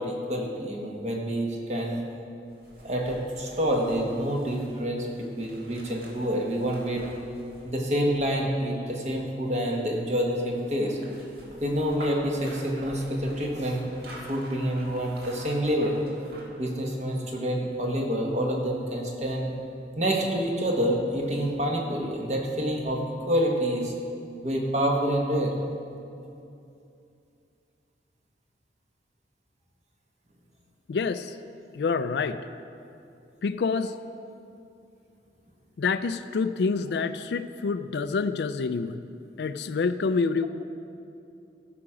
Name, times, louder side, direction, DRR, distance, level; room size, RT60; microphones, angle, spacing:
voice 1, 0.0-2.0 2.8-7.1 7.6-11.0 11.6-16.0 16.6-19.5 20.0-23.9 24.4-25.5, equal, 40° right, 0 dB, 1.3 m, -27 dB
sound 1, 2.5-8.7 10.3-16.6 17.0-17.1, right 1 dB, 60° right, 1.7 m, -47 dB
voice 2, 30.9-31.4 31.7-32.4 33.4-33.9 35.8-39.0 39.4-40.5, left 4 dB, 65° left, 11 dB, 0.4 m, -27 dB
13.5 x 5.8 x 5.0 m, 2.6 s
head